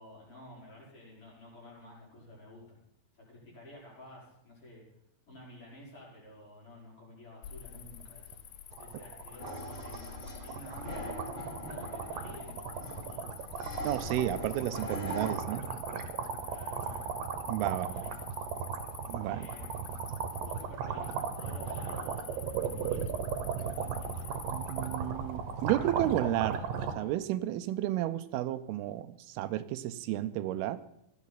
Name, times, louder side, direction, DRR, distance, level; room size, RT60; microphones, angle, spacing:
voice 1, 0.0-2.8 3.1-4.8 5.3-8.4 8.8-13.3 16.4-17.1 17.7-18.1 19.3-20.0 20.4-21.1 21.3-23.1 23.6-24.5, left 1 dB, 35° left, -5 dB, 5.5 m, -51 dB
Cricket, 7.4-26.3, left 9 dB, 85° left, 1.6 m, -48 dB
sound 1, 7.8-8.0 8.3-8.4 8.7-26.9, right 6 dB, 70° right, 2.8 m, -36 dB
sound 2, 9.4-15.3, equal, 20° left, 2.3 m, -43 dB
voice 2, 13.8-15.6 17.5-18.0 19.1-19.5 24.4-26.6 27.0-30.8, right 13 dB, 85° right, 12 dB, 2.6 m, -32 dB
17.0 x 13.5 x 4.1 m, 0.80 s
omnidirectional pair, 4.4 m